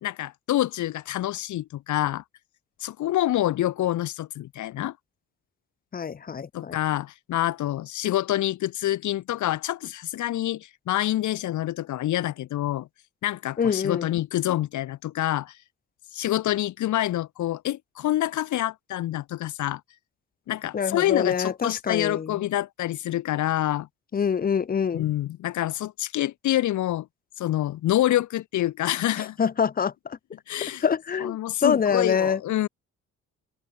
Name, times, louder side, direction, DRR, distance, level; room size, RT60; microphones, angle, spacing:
voice 1, 0.0-2.2 2.8-4.9 6.5-12.9 13.2-15.6 16.1-19.8 20.5-23.9 24.9-27.1 27.4-29.4 30.5-30.8 31.2-32.7, left 14 dB, 75° left, 1.2 m, -27 dB
voice 2, 5.9-6.8 13.6-14.1 20.7-22.5 24.1-25.0 29.2-30.2 30.8-32.4, left 7 dB, 30° left, 0.7 m, -25 dB
open air
cardioid pair, 90°, 30 cm